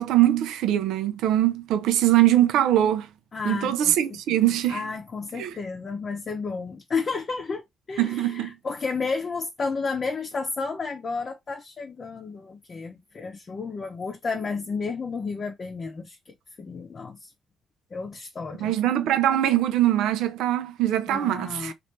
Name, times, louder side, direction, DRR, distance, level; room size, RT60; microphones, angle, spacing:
voice 1, 0.0-3.1 3.4-4.8 5.3-5.5 8.0-8.5 18.6-21.7, right 13 dB, 90° right, 0.5 m, -22 dB
voice 2, 3.3-4.2 4.7-16.2 16.6-17.3 17.9-18.7 21.1-21.7, left 4 dB, 40° left, 0.7 m, -32 dB
3.2 x 2.5 x 3.0 m
cardioid pair, 90°, 0 cm